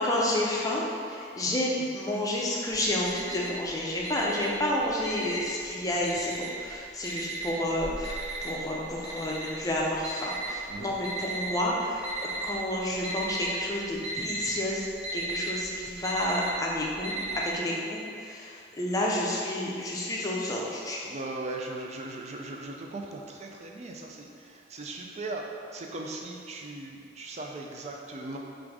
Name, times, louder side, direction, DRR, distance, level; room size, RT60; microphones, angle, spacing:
voice 1, 0.0-12.0 12.4-14.9 15.1-21.0, left 1 dB, 20° left, -3 dB, 0.5 m, -30 dB
Alarm, 2.7-3.7 4.0-5.6 6.0-6.7 7.0-11.5 12.0-12.6 12.9-13.6 13.8-17.5, right 3 dB, 70° right, 1.1 m, -35 dB
voice 2, 21.0-25.4 25.7-28.4, right 2 dB, 35° right, 1 dB, 0.4 m, -38 dB
3.6 x 2.6 x 4.6 m, 2.3 s
head